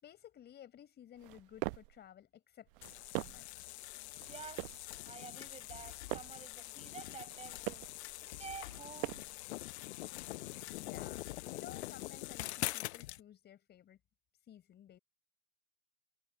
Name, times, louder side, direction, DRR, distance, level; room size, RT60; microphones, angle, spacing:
voice 1, 0.0-3.5 10.8-14.0 14.5-15.0, left 10 dB, 25° left, 5.4 m, -55 dB
sound 1, 1.2-2.0 2.7-3.6 4.2-4.9 5.6-6.5 7.2-8.0 8.6-9.4, right 23 dB, 40° right, 0.8 m, -43 dB
sound 2, 2.8-13.2, left 18 dB, 50° left, 0.7 m, -44 dB
voice 2, 4.3-7.9 8.2-9.3, right 6 dB, 15° right, 7.3 m, -50 dB
hypercardioid pair, 135°, 42 cm